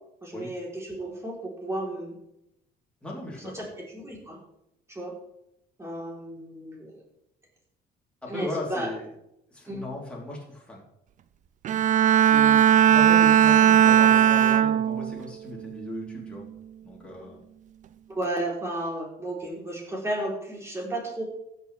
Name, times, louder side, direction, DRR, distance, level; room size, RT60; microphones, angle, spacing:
voice 1, 0.2-2.2 3.4-4.4 4.9-5.1 5.8-7.0 8.3-8.9 9.7-9.8 17.2-17.3 18.1-21.2, right 1 dB, 15° right, -2 dB, 3.6 m, -33 dB
voice 2, 3.0-3.7 8.3-9.1 9.5-10.8 12.2-16.5 16.8-17.4, left 2 dB, 5° left, -4 dB, 3.4 m, -37 dB
Bowed string instrument, 11.6-15.2 15.7-16.1, right 9 dB, 50° right, 0.5 m, -18 dB
15.5 x 6.8 x 3.4 m, 0.81 s
cardioid pair, 110°, 17 cm